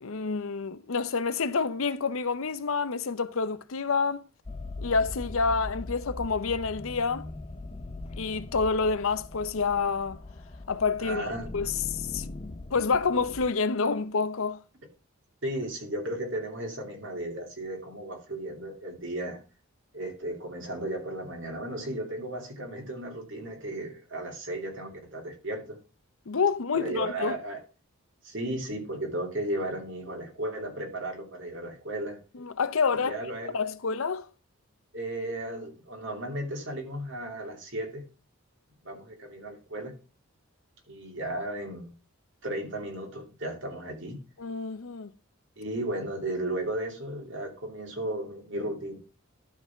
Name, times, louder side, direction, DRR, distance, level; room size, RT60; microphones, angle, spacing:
voice 1, 0.0-4.3 4.8-7.3 8.2-10.2 10.7-11.3 11.5-12.2 12.7-14.6 26.3-27.4 32.3-33.1 33.5-34.3 44.4-45.1, left 4 dB, 70° left, 0.7 m, -28 dB
sound 1, 4.4-13.5, left 2 dB, 25° left, 0.5 m, -40 dB
voice 2, 11.0-11.5 15.4-19.4 19.9-25.8 26.7-27.6 28.2-32.2 33.1-33.6 34.9-38.0 38.8-39.9 40.9-41.9 42.4-44.2 45.6-49.0, right 1 dB, 60° right, 2.8 m, -35 dB
12.0 x 4.1 x 5.9 m
head